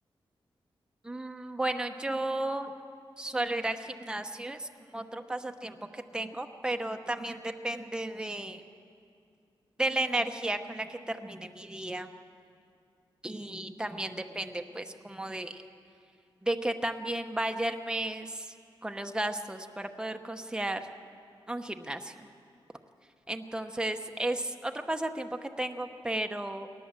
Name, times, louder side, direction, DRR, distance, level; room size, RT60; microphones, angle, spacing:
voice 1, 1.0-2.7 3.2-8.6 9.8-12.1 13.2-15.6 16.4-18.5 18.8-20.8 21.5-22.1 23.3-26.7, right 1 dB, 10° right, 6 dB, 1.0 m, -33 dB
22.5 x 18.5 x 7.6 m, 2.4 s
wide cardioid pair, 120°, 9 cm